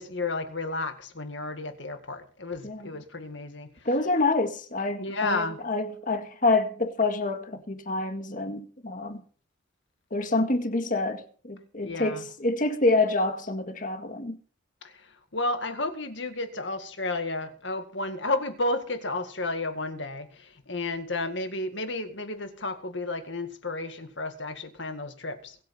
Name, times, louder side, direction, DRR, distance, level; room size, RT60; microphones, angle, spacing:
voice 1, 0.0-3.7 5.0-5.6 11.8-12.3 14.8-25.6, left 2 dB, 65° left, 2.0 m, -32 dB
voice 2, 3.9-9.2 10.1-14.4, left 2 dB, 40° left, 1.9 m, -27 dB
22.5 x 8.6 x 4.4 m
head